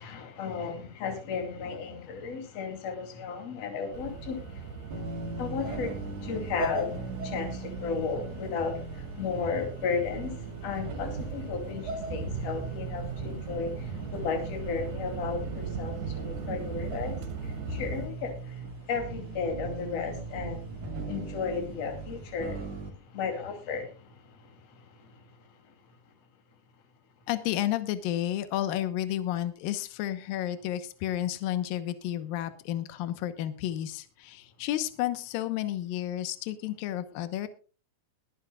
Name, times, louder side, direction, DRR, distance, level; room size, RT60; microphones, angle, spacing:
voice 1, 0.0-20.7 21.0-22.8 23.1-24.2 24.4-24.8, left 5 dB, 45° left, 3.5 m, -34 dB
sound 1, 3.9-18.1, right 5 dB, 85° right, 3.9 m, -39 dB
sound 2, 4.9-22.9, right 2 dB, 45° right, 3.0 m, -39 dB
voice 2, 27.3-37.5, left 12 dB, 75° left, 2.6 m, -31 dB
21.5 x 11.0 x 2.4 m
omnidirectional pair, 4.4 m